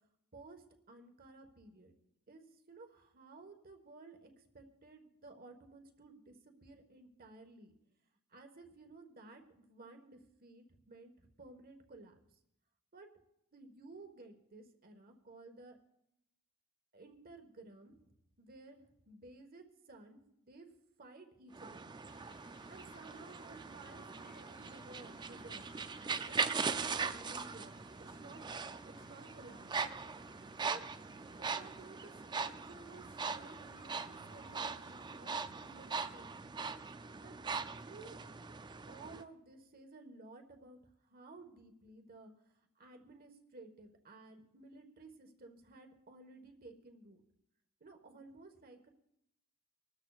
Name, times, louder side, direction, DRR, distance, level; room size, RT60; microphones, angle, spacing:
voice 1, 0.3-1.9 2.3-7.7 8.3-12.4 12.9-13.1 13.5-15.8 16.9-18.8 19.1-20.7 21.0-21.9 22.7-25.7 26.3-28.6 28.9-29.7 30.6-30.8 31.4-35.3 35.6-36.3 37.2-38.2 38.9-40.8 41.1-42.3 42.8-47.2 47.8-48.9, right 3 dB, 40° right, 5 dB, 1.4 m, -55 dB
sound 1, 21.5-39.2, right 5 dB, 20° right, 0.4 m, -41 dB
sound 2, 22.1-36.2, left 3 dB, 65° left, 1.3 m, -64 dB
25.5 x 13.0 x 2.4 m, 0.82 s
head